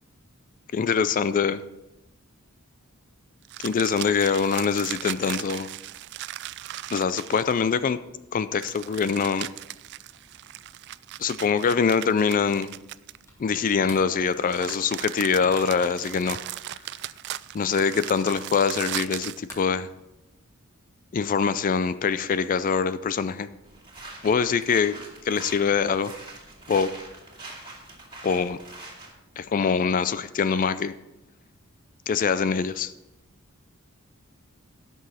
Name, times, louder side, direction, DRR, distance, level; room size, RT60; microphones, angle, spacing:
voice 1, 0.7-1.6 3.6-5.7 6.9-8.0 8.3-9.5 11.2-12.7 13.4-16.4 17.5-19.9 21.1-23.5 24.2-25.0 25.3-26.1 26.7-26.9 28.2-28.6 29.4-31.0 32.1-32.9, left 6 dB, 40° left, 14 dB, 0.3 m, -24 dB
sound 1, 3.5-7.7 8.6-13.5 14.2-19.5, right 14 dB, 55° right, 0.3 m, -37 dB
sound 2, 13.2-19.2 19.4-20.4, equal, 15° left, 2.2 m, -51 dB
sound 3, 23.6-29.1, right 2 dB, 25° right, 2.3 m, -44 dB
16.5 x 6.2 x 4.2 m, 0.94 s
head